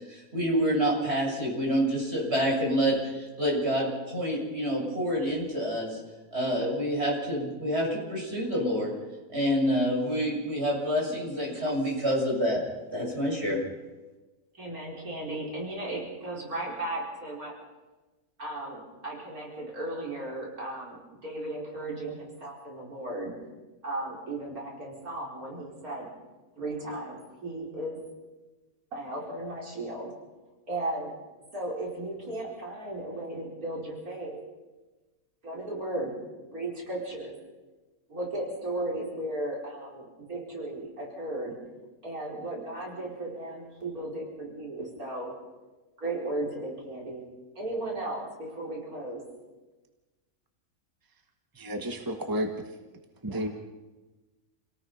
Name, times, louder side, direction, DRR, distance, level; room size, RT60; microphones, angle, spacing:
voice 1, 0.0-6.0 6.3-8.9 9.3-12.6 12.9-13.6, equal, 45° right, -2 dB, 7.2 m, -27 dB
voice 2, 14.6-17.6 18.4-23.3 23.8-26.1 26.6-28.0 28.9-30.1 30.7-31.1 31.5-34.4 35.4-36.1 36.5-37.3 38.1-41.6 42.0-45.3 46.0-47.2 47.6-49.2 53.3-53.5, right 1 dB, 80° right, -2 dB, 5.6 m, -35 dB
voice 3, 51.5-52.5 53.2-53.5, equal, 15° right, 4 dB, 1.5 m, -31 dB
29.0 x 18.0 x 5.7 m, 1.2 s
omnidirectional pair, 1.5 m